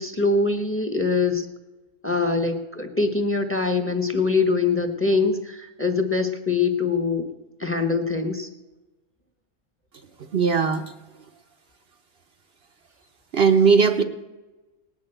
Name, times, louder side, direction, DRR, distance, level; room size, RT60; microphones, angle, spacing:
voice 1, 0.0-1.5 2.0-7.3 7.6-8.5, left 4 dB, 10° left, 6 dB, 1.1 m, -23 dB
voice 2, 10.3-10.8 13.3-14.0, right 5 dB, 55° right, 5 dB, 1.0 m, -18 dB
18.5 x 6.4 x 8.9 m, 1.1 s
omnidirectional pair, 1.3 m